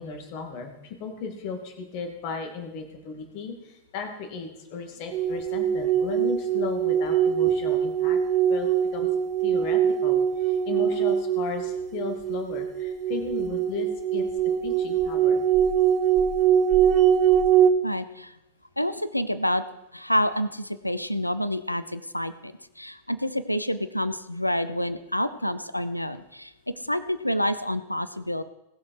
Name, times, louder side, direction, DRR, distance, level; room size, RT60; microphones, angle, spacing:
voice 1, 0.0-8.2 8.5-9.1 9.4-14.3 14.6-15.4, left 5 dB, 45° left, 4 dB, 2.3 m, -35 dB
sound 1, 5.1-17.7, right 9 dB, 35° right, 0.7 m, -23 dB
voice 2, 17.8-18.3 18.8-19.6 19.9-26.5 26.8-28.4, equal, 90° left, 14 dB, 0.6 m, -28 dB
19.0 x 6.4 x 4.8 m, 0.91 s
figure-of-eight pair, 90°, 0 cm